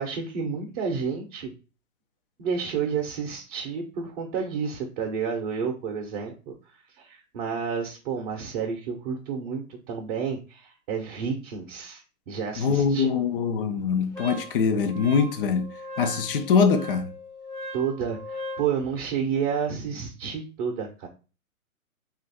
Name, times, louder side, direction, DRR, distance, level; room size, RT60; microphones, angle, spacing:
voice 1, 0.0-1.5 2.4-6.5 7.0-13.1 17.7-21.1, right 6 dB, 35° right, 0.7 m, -30 dB
voice 2, 12.6-15.7 16.0-17.1, left 6 dB, 40° left, 0.5 m, -23 dB
Wind instrument woodwind instrument, 14.1-18.7, equal, 5° left, 0.7 m, -39 dB
3.0 x 2.5 x 4.1 m
hypercardioid pair, 130°, 43 cm